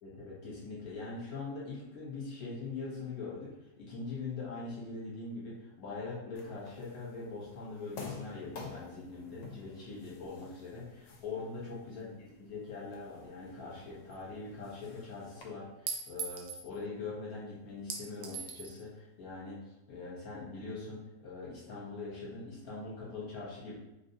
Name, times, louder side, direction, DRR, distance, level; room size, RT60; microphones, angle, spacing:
voice 1, 0.0-23.7, left 3 dB, 55° left, -6 dB, 1.2 m, -42 dB
sound 1, 6.4-15.4, left 4 dB, 75° left, 1.2 m, -51 dB
Chink clink, 14.1-14.2 15.9-16.7 17.9-18.8, right 6 dB, 80° right, 0.8 m, -39 dB
3.4 x 2.7 x 2.6 m, 0.94 s
omnidirectional pair, 2.1 m